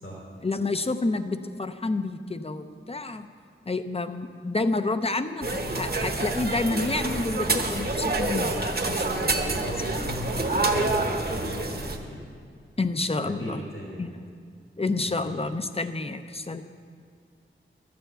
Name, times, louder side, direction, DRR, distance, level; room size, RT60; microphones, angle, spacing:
voice 1, 0.4-3.3 3.7-9.5 12.8-13.6 14.0-14.2 14.8-16.6, left 3 dB, 30° left, 9 dB, 0.5 m, -29 dB
sound 1, 5.4-12.0, right 2 dB, 45° right, 1.0 m, -27 dB
voice 2, 9.3-12.2 13.2-14.1 15.1-15.2, left 1 dB, 80° left, -4 dB, 3.3 m, -37 dB
12.5 x 6.9 x 7.7 m, 2.2 s
wide cardioid pair, 90°, 21 cm